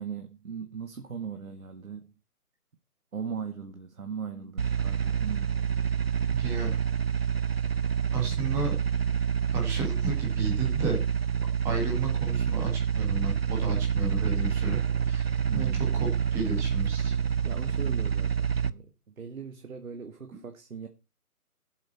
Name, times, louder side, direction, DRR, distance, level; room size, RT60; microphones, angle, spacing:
voice 1, 0.0-2.1 3.1-5.7 15.5-15.9 17.0-20.9, right 6 dB, 65° right, 1.7 m, -39 dB
sound 1, 4.6-18.7, right 7 dB, 45° right, 0.5 m, -27 dB
voice 2, 6.3-6.7 8.1-8.7 9.5-11.0 11.6-15.3 15.5-17.1, right 4 dB, 5° right, 1.4 m, -32 dB
16.5 x 7.9 x 4.3 m
figure-of-eight pair, 160°, 45 cm